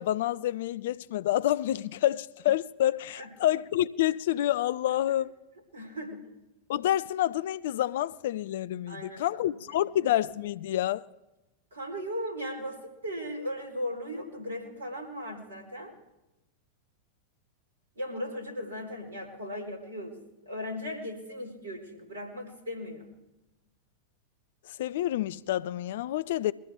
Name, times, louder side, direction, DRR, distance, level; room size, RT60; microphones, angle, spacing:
voice 1, 0.0-5.3 6.7-11.0 24.8-26.5, left 13 dB, 55° left, 0.4 m, -28 dB
voice 2, 5.7-6.3 8.9-9.2 9.7-9.8 11.7-15.9 18.0-20.1 20.4-23.1, equal, 70° right, 4.1 m, -37 dB
22.0 x 15.0 x 3.6 m
figure-of-eight pair, 90°, 0 cm